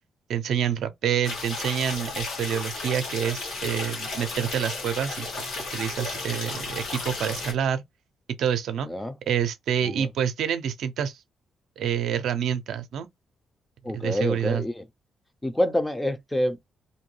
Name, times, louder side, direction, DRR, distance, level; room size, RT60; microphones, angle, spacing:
voice 1, 0.3-7.8 8.4-8.9 9.3-11.2 11.8-13.1 13.9-14.6, right 9 dB, 75° right, 0.4 m, -27 dB
sound 1, 1.2-7.5, left 3 dB, 75° left, 1.3 m, -33 dB
voice 2, 8.8-9.2 9.8-10.1 13.8-14.8 15.4-16.7, left 1 dB, 10° left, 0.4 m, -27 dB
2.6 x 2.2 x 3.1 m
cardioid pair, 100°, 0 cm